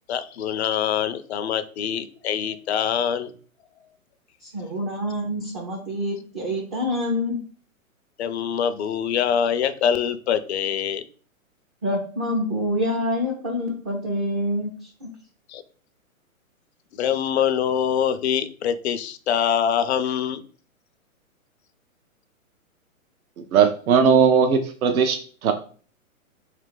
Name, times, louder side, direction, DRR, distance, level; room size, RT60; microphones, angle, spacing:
voice 1, 0.1-3.3 8.2-11.0 15.5-15.6 16.9-20.4, left 8 dB, 50° left, 11 dB, 0.5 m, -24 dB
voice 2, 4.4-7.4 11.8-15.1, left 1 dB, 20° right, 1 dB, 0.4 m, -26 dB
voice 3, 23.5-25.5, right 6 dB, 80° right, 6 dB, 0.7 m, -18 dB
3.3 x 3.1 x 3.7 m, 0.42 s
hypercardioid pair, 135°, 42 cm